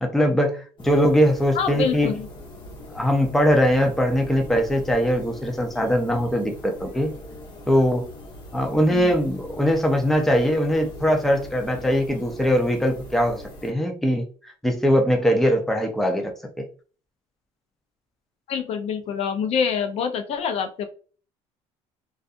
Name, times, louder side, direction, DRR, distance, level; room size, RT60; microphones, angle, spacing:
voice 1, 0.0-2.1 2.9-7.1 7.7-8.1 8.5-16.3 16.6-16.7, equal, ahead, 2 dB, 0.5 m, -21 dB
sound 1, 0.8-13.7, left 2 dB, 40° left, 1.1 m, -41 dB
voice 2, 1.5-2.3 8.9-9.1 18.5-20.9, left 6 dB, 55° left, 7 dB, 0.5 m, -26 dB
2.6 x 2.3 x 2.4 m, 0.38 s
cardioid pair, 125°, 12 cm